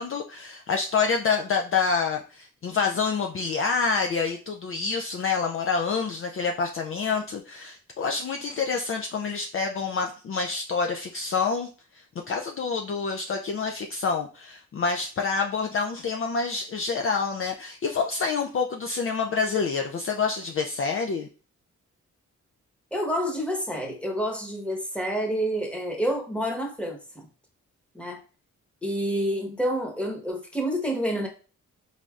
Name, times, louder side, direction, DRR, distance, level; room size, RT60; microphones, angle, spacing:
voice 1, 0.0-21.3, left 5 dB, 45° left, 0.4 m, -27 dB
voice 2, 22.9-27.3 27.9-28.2 28.8-31.3, equal, 5° left, 1.1 m, -28 dB
3.9 x 3.3 x 2.4 m
cardioid pair, 60°, 31 cm